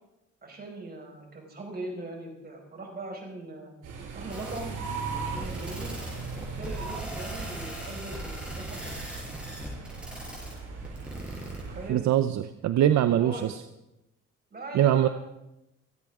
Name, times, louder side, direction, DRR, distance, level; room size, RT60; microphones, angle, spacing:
voice 1, 0.4-3.7 4.1-4.8 5.2-5.9 6.4-9.3 11.5-12.0 13.0-13.5 14.5-15.1, right 2 dB, 30° right, 0 dB, 5.0 m, -40 dB
sound 1, 3.8-11.9, right 4 dB, 85° right, 5.8 m, -38 dB
sound 2, 4.3-11.6, equal, 5° right, 5.7 m, -40 dB
voice 2, 11.9-13.6 14.7-15.1, right 11 dB, 65° right, 11 dB, 0.6 m, -23 dB
27.0 x 9.0 x 3.6 m, 0.92 s
cardioid pair, 90°, 30 cm